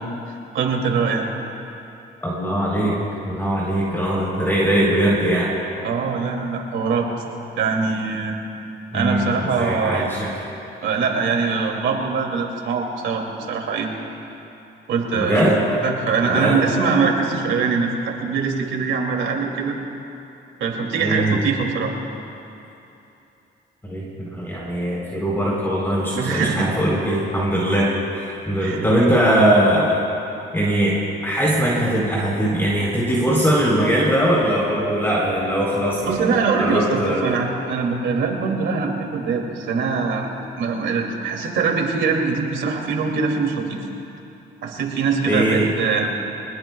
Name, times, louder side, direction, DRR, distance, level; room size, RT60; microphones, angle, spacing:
voice 1, 0.5-1.3 5.8-7.1 7.6-8.4 8.9-10.1 10.8-13.9 14.9-15.4 15.8-19.7 20.6-21.9 26.1-26.7 28.6-28.9 36.0-40.3 40.6-43.8 44.6-46.1, right 5 dB, 75° right, 1 dB, 2.7 m, -22 dB
voice 2, 2.2-3.0 3.2-5.5 8.9-10.3 15.1-15.9 16.3-16.6 21.0-21.4 23.8-30.0 30.5-31.0 31.2-37.4 45.3-45.7, right 1 dB, 10° left, -5 dB, 3.9 m, -21 dB
24.5 x 20.0 x 2.3 m, 2.8 s
cardioid pair, 90°, 20 cm